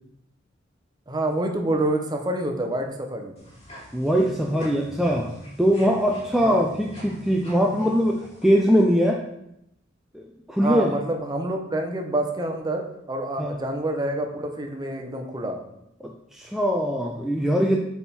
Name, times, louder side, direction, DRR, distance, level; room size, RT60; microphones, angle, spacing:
voice 1, 1.1-3.3 6.4-6.6 10.6-15.6, right 1 dB, 20° right, 3 dB, 0.9 m, -27 dB
sound 1, 3.4-8.5, right 1 dB, 35° left, 2.3 m, -44 dB
voice 2, 3.9-5.3 5.6-9.2 10.1-10.9 13.4-13.6 16.0-17.8, equal, ahead, -1 dB, 0.5 m, -22 dB
8.6 x 3.6 x 4.3 m, 0.81 s
head